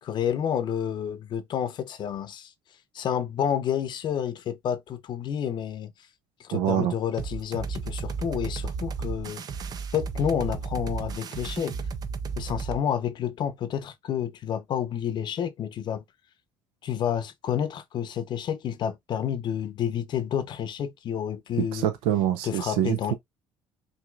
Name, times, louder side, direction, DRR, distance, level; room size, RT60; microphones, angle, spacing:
voice 1, 0.0-2.5 2.9-5.9 6.4-9.4 9.9-11.8 12.4-16.0 16.8-21.9 22.4-23.1, left 9 dB, 55° left, 0.7 m, -29 dB
voice 2, 6.5-6.9 21.7-23.1, right 11 dB, 90° right, 0.6 m, -25 dB
sound 1, 7.2-12.8, right 5 dB, 45° right, 0.6 m, -33 dB
6.0 x 2.8 x 2.3 m
cardioid pair, 105°, 9 cm